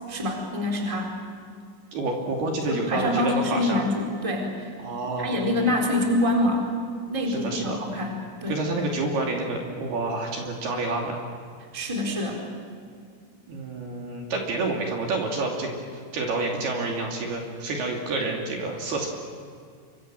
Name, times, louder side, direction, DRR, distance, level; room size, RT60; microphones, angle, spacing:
voice 1, 0.1-1.1 2.6-4.7 5.2-6.6 7.1-8.5 11.7-12.4, left 1 dB, 5° right, 1 dB, 3.3 m, -26 dB
voice 2, 1.9-3.8 4.8-5.4 7.3-7.8 8.5-11.2 13.5-15.8 16.1-19.1, right 2 dB, 55° right, 0 dB, 4.3 m, -28 dB
28.0 x 25.0 x 7.8 m, 2.3 s
omnidirectional pair, 5.8 m